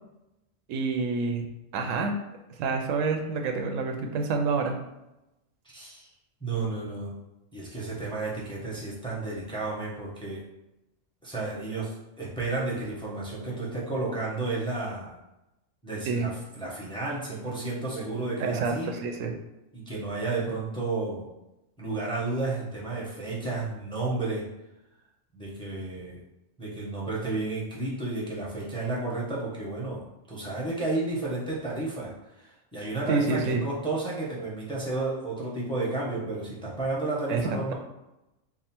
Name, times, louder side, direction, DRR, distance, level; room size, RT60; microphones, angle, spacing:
voice 1, 0.7-1.5 1.7-2.2 2.6-4.8 16.0-16.3 18.4-19.3 33.1-33.6 37.3-37.7, right 4 dB, 90° right, 4 dB, 1.0 m, -28 dB
voice 2, 5.6-6.1 6.4-7.1 7.5-10.4 11.2-15.1 15.8-18.9 19.7-21.3 21.8-24.4 25.3-26.2 26.6-30.0 30.3-32.1 32.4-37.7, right 2 dB, 5° left, -6 dB, 0.8 m, -32 dB
3.6 x 2.1 x 4.2 m, 0.94 s
omnidirectional pair, 1.3 m